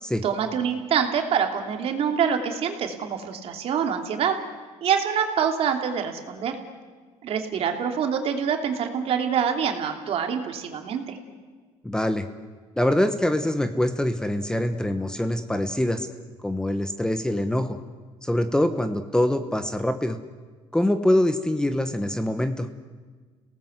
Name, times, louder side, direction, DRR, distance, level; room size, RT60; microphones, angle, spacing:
voice 1, 0.2-4.4 4.8-6.6 7.2-11.2, right 7 dB, 55° right, 4 dB, 2.8 m, -25 dB
voice 2, 11.8-12.3 12.8-16.1 16.4-17.8 18.2-20.2 20.7-22.7, left 1 dB, 5° left, 9 dB, 1.1 m, -24 dB
29.5 x 18.0 x 8.0 m, 1.4 s
cardioid pair, 125°, 12 cm